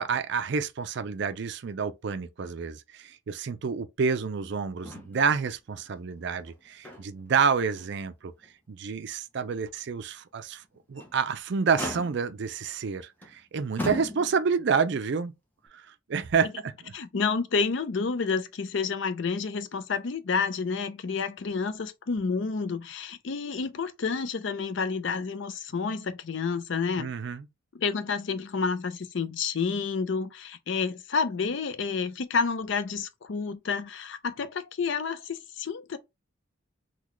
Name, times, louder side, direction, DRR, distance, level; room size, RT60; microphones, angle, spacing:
voice 1, 0.0-8.3 8.7-10.6 10.9-15.3 15.7-15.8 16.1-16.9 27.0-27.5, right 5 dB, 55° right, 0.4 m, -29 dB
Motor vehicle (road), 4.8-5.5 5.8-5.9 6.4-7.3 7.8-7.9 8.4-8.5 10.7-11.2 11.8-12.5 13.2-13.4 13.8-14.6 15.6-15.7, left 1 dB, 10° left, 0.7 m, -37 dB
voice 2, 16.9-27.1 27.7-36.0, left 5 dB, 60° left, 0.4 m, -29 dB
3.9 x 2.2 x 3.0 m
head